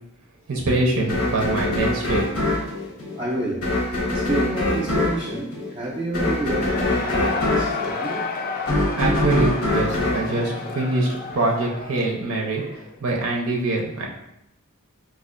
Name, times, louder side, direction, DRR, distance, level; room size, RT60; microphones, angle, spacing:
voice 1, 0.5-2.2 9.0-12.6 13.0-14.1, right 2 dB, 85° right, -1 dB, 0.6 m, -24 dB
sound 1, 1.1-11.3, left 1 dB, 85° left, 0.8 m, -24 dB
voice 2, 3.2-3.7 4.1-8.2, right 2 dB, 25° right, -4 dB, 0.4 m, -29 dB
Cheering / Crowd, 6.2-12.9, left 4 dB, 45° left, 0.4 m, -31 dB
4.2 x 2.4 x 2.4 m, 0.84 s
head